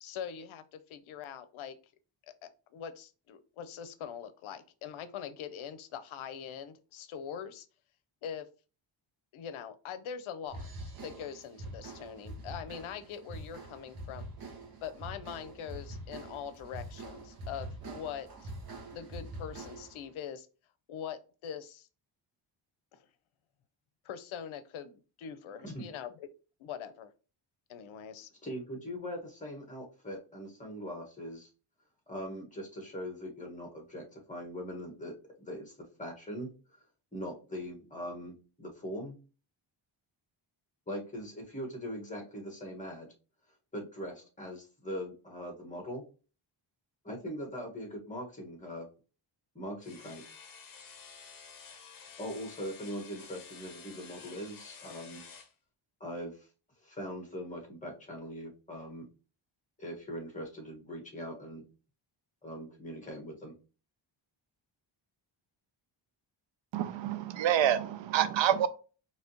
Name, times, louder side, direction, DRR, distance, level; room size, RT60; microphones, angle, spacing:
voice 1, 0.0-1.8 2.4-7.7 8.2-8.5 9.3-14.3 14.8-18.5 18.9-20.5 20.9-21.9 22.9-23.0 24.0-26.3 26.6-27.1 27.7-28.3, left 8 dB, 80° left, 11 dB, 0.6 m, -43 dB
sound 1, 10.5-20.0, right 1 dB, 45° right, 1.2 m, -44 dB
voice 2, 28.4-31.5 32.1-36.8 37.1-39.2 40.9-43.1 43.7-46.0 47.0-48.9 49.5-50.2 52.2-55.2 56.0-56.5 56.8-59.1 59.8-61.6 62.4-63.5, equal, 15° left, 1 dB, 1.5 m, -41 dB
sound 2, 49.8-55.5, left 6 dB, 45° left, 0.9 m, -51 dB
voice 3, 66.7-68.7, right 10 dB, 65° right, 13 dB, 0.5 m, -27 dB
4.8 x 2.9 x 2.9 m, 0.35 s
wide cardioid pair, 140°, 48 cm